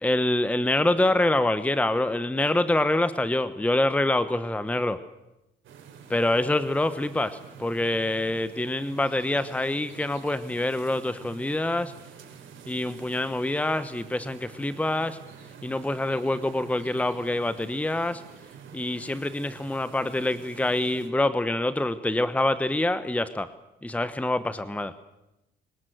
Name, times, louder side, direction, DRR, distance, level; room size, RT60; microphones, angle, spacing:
voice 1, 0.0-5.0 6.1-11.9 12.7-15.2 15.6-18.2 18.7-23.5 23.8-24.9, left 1 dB, 5° left, 14 dB, 0.9 m, -26 dB
sound 1, 5.6-21.1, right 7 dB, 75° right, 4.1 m, -47 dB
23.0 x 19.0 x 7.8 m, 0.94 s
cardioid pair, 90°, 20 cm